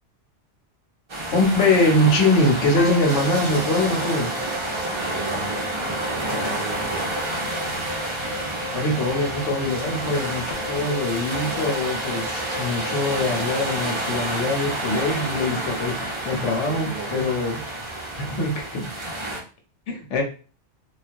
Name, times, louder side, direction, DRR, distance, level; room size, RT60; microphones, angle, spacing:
sound 1, 1.1-19.4, right 1 dB, 50° right, 0.3 m, -29 dB
voice 1, 1.3-4.3 8.7-17.6 18.2-18.9 19.9-20.2, left 2 dB, 85° left, 2 dB, 1.0 m, -23 dB
sound 2, 2.8-15.0, equal, 60° left, 0.4 m, -36 dB
voice 2, 5.0-7.2 16.2-17.3, right 5 dB, 65° right, -1 dB, 0.7 m, -36 dB
2.2 x 2.2 x 2.5 m, 0.36 s
omnidirectional pair, 1.2 m